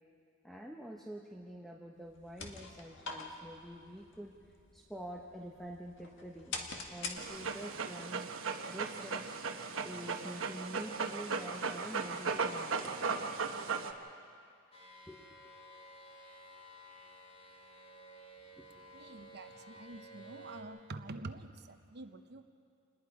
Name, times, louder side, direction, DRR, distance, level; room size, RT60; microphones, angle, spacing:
voice 1, 0.4-4.3 4.7-6.6 6.9-9.2 9.8-13.3 15.1-15.3 18.6-18.9 19.3-19.4, right 1 dB, ahead, 0 dB, 1.0 m, -47 dB
sound 1, 2.0-7.8, left 4 dB, 65° left, 1.9 m, -46 dB
Dog, 7.2-13.9, right 5 dB, 70° right, 1.1 m, -37 dB
sound 2, 14.7-20.6, right 1 dB, 30° left, 3.4 m, -54 dB
voice 2, 18.9-22.4, right 2 dB, 55° right, 8 dB, 0.9 m, -47 dB
28.0 x 20.5 x 4.9 m, 2.3 s
head